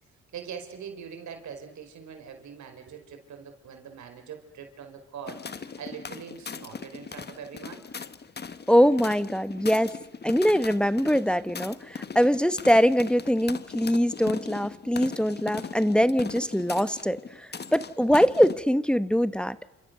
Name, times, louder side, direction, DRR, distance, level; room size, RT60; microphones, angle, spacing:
voice 1, 0.3-7.8, right 7 dB, 70° right, 6 dB, 4.8 m, -42 dB
sound 1, 5.3-18.6, left 5 dB, 35° left, 1.4 m, -39 dB
voice 2, 8.7-9.9 10.2-19.6, equal, 5° left, 13 dB, 1.1 m, -23 dB
30.0 x 27.5 x 6.8 m, 0.88 s
cardioid pair, 90°, 30 cm